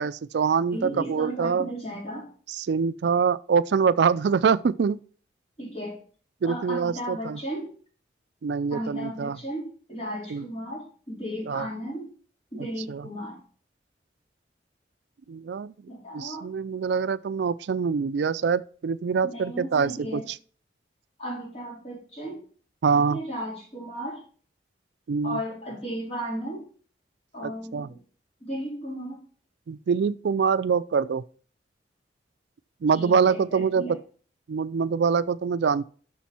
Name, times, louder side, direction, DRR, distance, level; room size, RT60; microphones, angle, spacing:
voice 1, 0.0-1.7 2.6-5.0 6.4-7.4 8.4-9.4 10.3-10.4 11.5-11.7 12.9-13.0 15.3-15.7 16.1-20.2 22.8-23.2 25.1-25.4 27.4-27.9 29.7-31.2 32.8-33.8 34.5-35.9, right 6 dB, 70° right, 0.4 m, -24 dB
voice 2, 0.7-2.3 5.6-6.0 6.4-7.7 8.7-12.1 12.5-13.4 15.9-16.5 19.2-20.3 21.2-22.4 22.9-24.2 25.2-26.7 27.3-28.0 28.4-29.2 32.9-34.0, equal, 35° left, 4.1 m, -35 dB
7.2 x 6.2 x 6.0 m
head